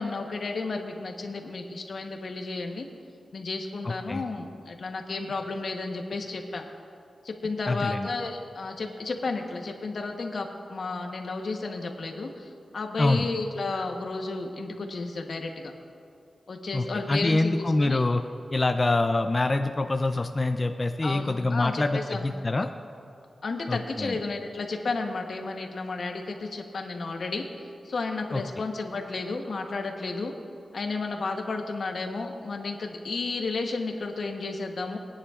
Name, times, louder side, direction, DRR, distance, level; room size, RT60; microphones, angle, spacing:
voice 1, 0.0-2.9 3.3-6.6 7.2-15.7 16.5-18.0 21.0-22.2 23.4-27.5 27.8-30.3 30.7-35.0, left 3 dB, 65° left, 3 dB, 1.0 m, -32 dB
voice 2, 3.8-4.2 7.7-8.1 13.0-13.3 16.7-18.2 18.5-22.7 23.7-24.2 28.3-28.4, left 2 dB, 30° left, 7 dB, 0.4 m, -25 dB
21.5 x 9.8 x 2.4 m, 2.5 s
wide cardioid pair, 110°, 0 cm